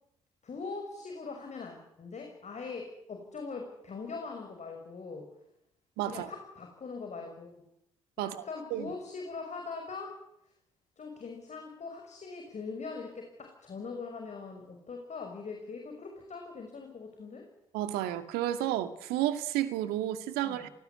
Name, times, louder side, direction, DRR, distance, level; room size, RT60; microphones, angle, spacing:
voice 1, 0.4-5.3 6.1-7.5 8.2-10.2 11.0-17.5 20.4-20.6, left 4 dB, 45° left, 5.9 m, -41 dB
voice 2, 6.0-6.3 8.2-8.5 8.7-8.9 17.7-20.7, right 13 dB, 70° right, 2.1 m, -31 dB
28.0 x 19.0 x 9.8 m
figure-of-eight pair, 45°, 17 cm